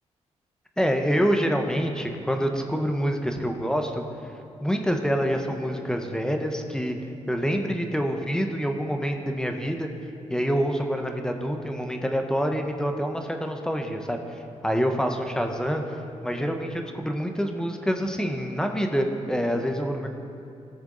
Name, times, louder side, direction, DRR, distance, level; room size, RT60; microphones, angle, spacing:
voice 1, 0.8-4.0 4.6-7.0 7.3-9.9 10.3-14.2 14.6-15.8 16.2-20.1, equal, 5° left, 4 dB, 0.9 m, -26 dB
17.0 x 6.9 x 3.9 m, 2.7 s
cardioid pair, 95°, 12 cm